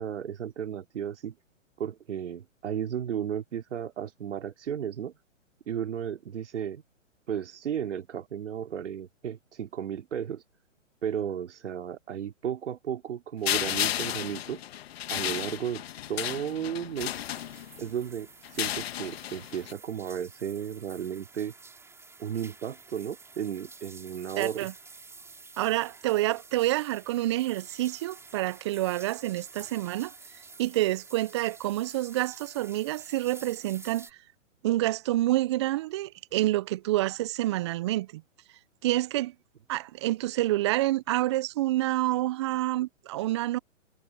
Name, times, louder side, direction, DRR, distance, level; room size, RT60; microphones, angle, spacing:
voice 1, 0.0-1.3 1.8-5.1 5.7-6.8 7.3-10.4 11.0-14.6 15.1-15.8 16.1-17.2 17.8-21.5 22.2-24.7, right 9 dB, 65° right, 3.9 m, -34 dB
sound 1, 13.4-17.9 18.4-19.7, left 12 dB, 50° left, 1.8 m, -33 dB
sound 2, 17.0-34.1, right 4 dB, 5° right, 4.2 m, -50 dB
voice 2, 24.4-24.7 25.6-30.1 30.6-34.1 34.6-38.2 38.8-39.3 39.7-43.6, right 16 dB, 25° right, 0.5 m, -28 dB
hypercardioid pair, 130°, 38 cm